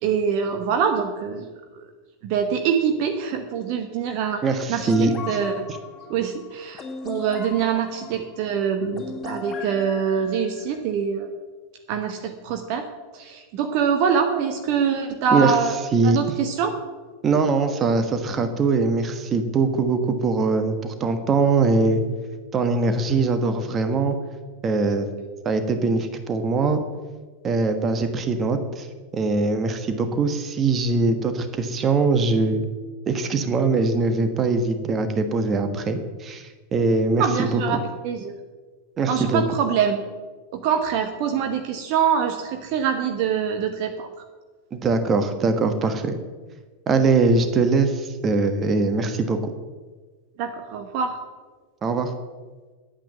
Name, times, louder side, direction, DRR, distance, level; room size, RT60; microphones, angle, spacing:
voice 1, 0.0-1.5 1.7-1.9 2.2-4.4 4.7-4.9 5.3-5.7 6.1-11.3 11.9-12.9 13.1-15.7 16.0-16.7 37.2-37.8 38.0-38.3 39.1-40.0 40.5-44.1 50.4-51.2, right 7 dB, 45° right, 5 dB, 1.1 m, -24 dB
voice 2, 4.4-5.4 15.3-15.6 15.9-16.2 17.2-22.0 22.5-24.2 24.6-25.1 25.4-26.8 27.4-28.9 29.1-32.6 33.1-37.6 39.0-39.4 44.7-46.1 46.9-49.5 51.8-52.1, right 3 dB, 25° right, 8 dB, 1.3 m, -22 dB
sound 1, 4.6-10.8, left 4 dB, 20° left, 3.0 m, -38 dB
10.0 x 9.0 x 7.2 m, 1.4 s
figure-of-eight pair, 90°, 0 cm